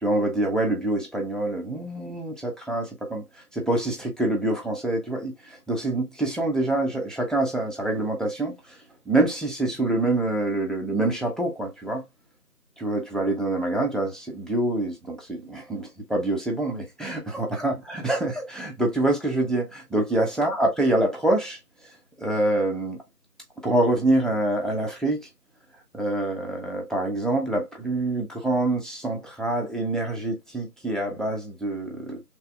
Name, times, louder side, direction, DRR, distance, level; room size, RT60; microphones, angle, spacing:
voice 1, 0.0-3.2 3.5-8.8 9.1-12.0 12.8-21.6 22.2-23.0 23.6-25.3 25.9-32.2, right 2 dB, ahead, 0.6 m, -26 dB
3.2 x 2.3 x 3.3 m
figure-of-eight pair, 175°, 47 cm